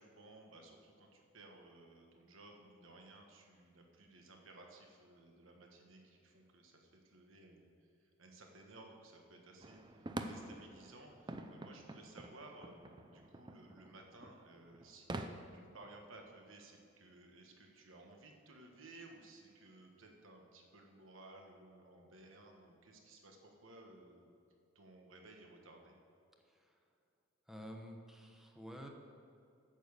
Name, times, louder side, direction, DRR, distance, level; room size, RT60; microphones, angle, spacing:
voice 1, 0.0-7.7 8.0-15.2 15.5-24.3 24.7-25.9, right 2 dB, 70° right, 1 dB, 1.4 m, -58 dB
sound 1, 9.6-15.3, right 2 dB, 20° right, 0.5 m, -47 dB
voice 2, 27.5-28.9, equal, ahead, 2 dB, 0.9 m, -50 dB
8.9 x 6.9 x 6.6 m, 2.5 s
head